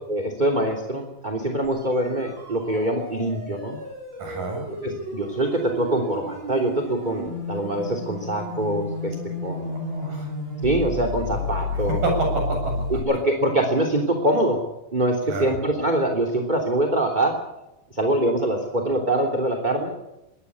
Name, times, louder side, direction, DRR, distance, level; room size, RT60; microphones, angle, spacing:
voice 1, 0.1-3.8 4.8-9.1 9.4-9.8 10.6-12.0 13.0-14.6 14.9-17.4 17.9-19.9, right 1 dB, 15° right, 4 dB, 2.9 m, -24 dB
sound 1, 1.8-13.0, left 1 dB, 30° right, 7.2 m, -32 dB
voice 2, 4.2-4.6 9.7-10.3 11.9-12.8 15.3-15.5, right 2 dB, 75° right, 2 dB, 9.3 m, -28 dB
23.0 x 18.0 x 8.6 m, 0.91 s
omnidirectional pair, 3.9 m